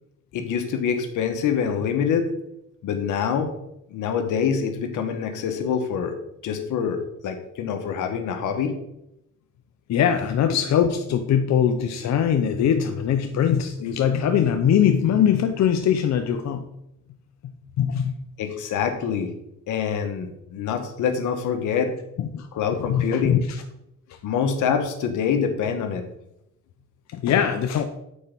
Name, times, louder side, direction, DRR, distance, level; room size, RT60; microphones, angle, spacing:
voice 1, 0.3-2.3 2.8-3.5 3.9-6.1 6.4-8.8 18.4-19.3 19.7-21.9 22.5-23.4 24.2-26.0, left 7 dB, 80° left, 6 dB, 1.2 m, -25 dB
voice 2, 9.9-16.6 17.8-18.1 22.2-22.5 22.7-23.6 27.1-27.8, left 8 dB, 60° left, 6 dB, 0.7 m, -21 dB
8.6 x 4.4 x 5.2 m, 0.83 s
cardioid pair, 90°, 30 cm